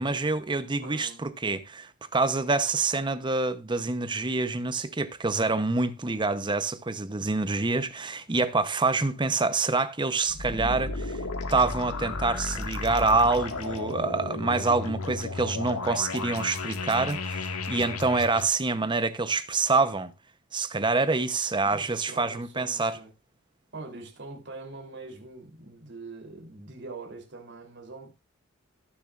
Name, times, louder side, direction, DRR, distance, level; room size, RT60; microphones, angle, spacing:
voice 1, 0.0-11.2 11.5-20.1 20.5-23.0, right 3 dB, 20° right, 0.8 m, -26 dB
voice 2, 0.8-1.2 21.6-23.1 23.7-28.1, right 3 dB, 55° right, 3.3 m, -43 dB
sound 1, 10.2-18.4, left 3 dB, 80° left, 1.8 m, -33 dB
18.5 x 6.8 x 2.4 m
head